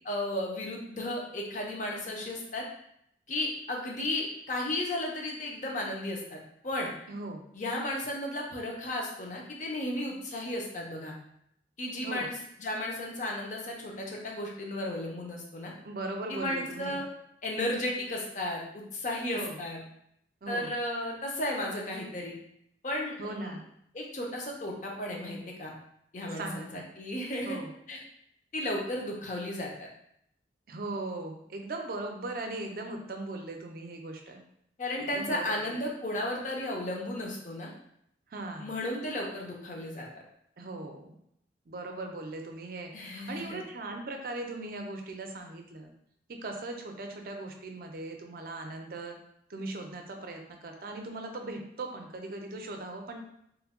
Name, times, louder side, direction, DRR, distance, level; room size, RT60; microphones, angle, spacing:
voice 1, 0.0-2.7 3.3-6.4 6.6-6.9 7.5-11.1 11.8-15.7 16.3-17.0 17.4-19.8 20.5-22.3 22.8-23.6 23.9-25.7 26.1-27.6 27.9-28.0 28.5-29.9 34.8-37.7 38.6-40.2 42.9-43.6, left 1 dB, 45° left, -1 dB, 0.6 m, -34 dB
voice 2, 7.1-7.4 12.0-12.3 15.8-17.0 19.3-19.6 20.4-20.7 23.2-23.6 26.3-26.8 27.4-27.7 30.7-34.4 35.0-35.7 38.3-38.7 40.6-41.2 41.7-45.9 46.3-49.2 49.5-53.2, right 2 dB, 55° right, 3 dB, 0.5 m, -39 dB
3.1 x 2.2 x 3.6 m, 0.74 s
head